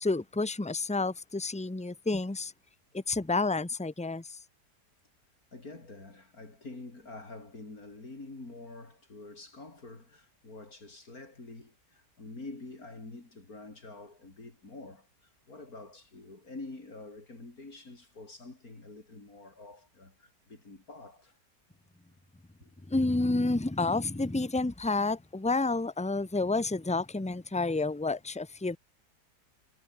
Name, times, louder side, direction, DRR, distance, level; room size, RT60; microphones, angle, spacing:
voice 1, 0.0-2.5 2.9-4.4 22.9-28.8, left 3 dB, 10° left, 0.4 m, -30 dB
voice 2, 5.5-21.4 22.6-22.7, left 2 dB, 60° left, 4.9 m, -47 dB
omnidirectional pair, 1.8 m